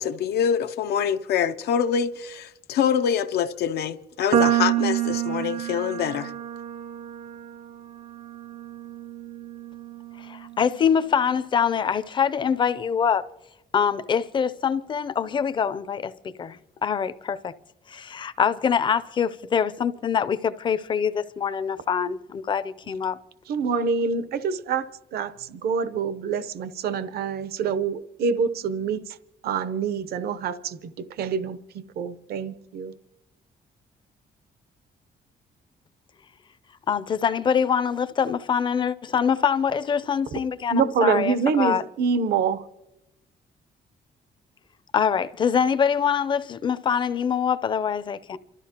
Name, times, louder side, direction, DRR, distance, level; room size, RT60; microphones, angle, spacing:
voice 1, 0.0-6.3, left 8 dB, 85° left, 0.6 m, -25 dB
sound 1, 4.3-10.7, right 11 dB, 50° right, 0.4 m, -28 dB
voice 2, 10.2-13.2 13.7-17.5 17.9-23.2 36.9-41.8 44.9-48.4, left 7 dB, 30° left, 0.5 m, -24 dB
voice 3, 23.5-29.2 29.4-32.9 40.7-42.6, right 5 dB, 80° right, 0.8 m, -26 dB
28.0 x 13.0 x 2.9 m
cardioid pair, 175°, 16 cm